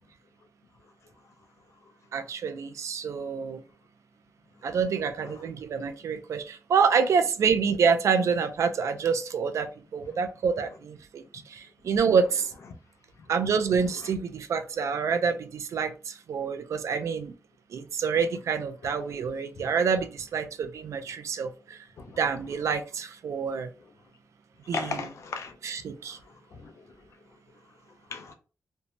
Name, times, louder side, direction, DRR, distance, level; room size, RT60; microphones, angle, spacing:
voice 1, 2.1-3.6 4.6-12.5 13.3-17.3 17.7-21.8 22.2-23.7 24.7-25.0 25.6-26.2, right 6 dB, 85° right, 0.3 m, -27 dB
voice 2, 24.7-25.5 26.5-26.7 28.1-28.3, left 4 dB, 75° left, 0.5 m, -35 dB
2.6 x 2.1 x 2.8 m
wide cardioid pair, 175°, 5 cm